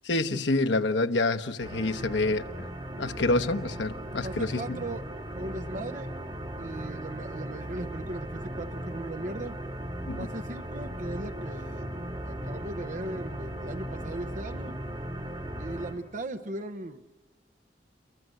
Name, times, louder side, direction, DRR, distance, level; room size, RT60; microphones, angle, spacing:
voice 1, 0.0-2.7 3.0-4.8 10.1-10.3, left 2 dB, 90° left, 1.0 m, -27 dB
sound 1, 1.6-15.9, equal, 30° right, 2.8 m, -37 dB
voice 2, 4.2-5.1 5.3-6.1 6.6-9.5 10.2-11.9 12.2-14.8 15.6-17.0, right 2 dB, 45° right, 0.9 m, -38 dB
29.5 x 22.5 x 7.7 m
head